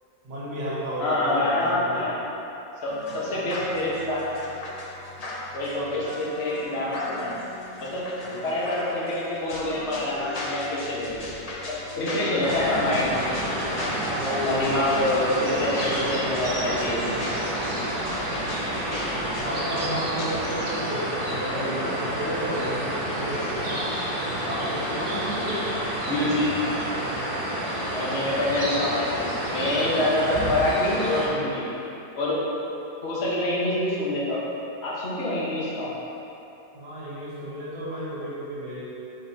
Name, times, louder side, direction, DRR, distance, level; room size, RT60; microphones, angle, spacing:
voice 1, 0.2-2.1 6.0-6.1 8.2-8.5 14.0-18.1 19.4-23.7 24.4-25.8 36.7-38.8, equal, 75° right, -8 dB, 2.1 m, -33 dB
voice 2, 1.0-2.1 2.8-4.3 5.5-7.4 7.8-8.1 8.4-11.3 11.6-13.1 14.3-17.1 21.5-21.9 26.0-26.4 27.9-31.7 32.1-32.4 33.0-34.4 34.8-35.9, left 1 dB, 40° left, -7 dB, 1.4 m, -26 dB
sound 1, 2.9-20.5, left 1 dB, 70° left, 0.3 m, -37 dB
sound 2, 12.4-31.3, right 1 dB, 35° right, 1.1 m, -29 dB
7.7 x 5.6 x 2.8 m, 3.0 s
omnidirectional pair, 1.9 m